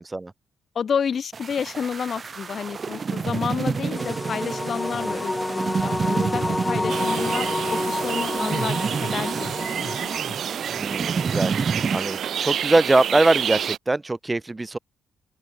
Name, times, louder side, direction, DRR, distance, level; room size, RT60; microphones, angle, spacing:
voice 1, 0.7-10.1, left 7 dB, 50° left, 6.6 m, -30 dB
sound 1, 1.3-12.0, right 5 dB, 40° right, 4.4 m, -29 dB
sound 2, 4.0-10.2, left 2 dB, 15° left, 6.4 m, -29 dB
sound 3, 6.9-13.8, right 9 dB, 60° right, 5.8 m, -29 dB
voice 2, 10.8-14.8, right 2 dB, 20° right, 2.7 m, -23 dB
open air
cardioid pair, 90°, 0 cm